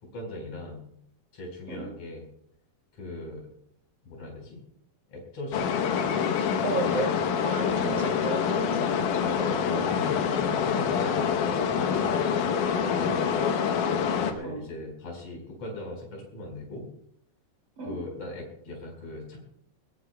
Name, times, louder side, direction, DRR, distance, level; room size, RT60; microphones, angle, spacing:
voice 1, 0.0-0.8 1.3-2.3 2.9-3.5 4.0-4.6 5.1-5.8 6.2-6.8 7.7-8.4 9.2-9.4 9.7-13.6 14.2-16.9 17.8-19.4, left 2 dB, 45° left, -1 dB, 5.6 m, -40 dB
sound 1, 5.5-14.3, left 7 dB, 70° left, 2.4 m, -26 dB
voice 2, 6.6-7.1 7.4-10.0 14.4-14.7 17.8-18.0, right 3 dB, 35° right, 2 dB, 3.0 m, -34 dB
21.5 x 19.0 x 2.3 m, 0.69 s
omnidirectional pair, 4.1 m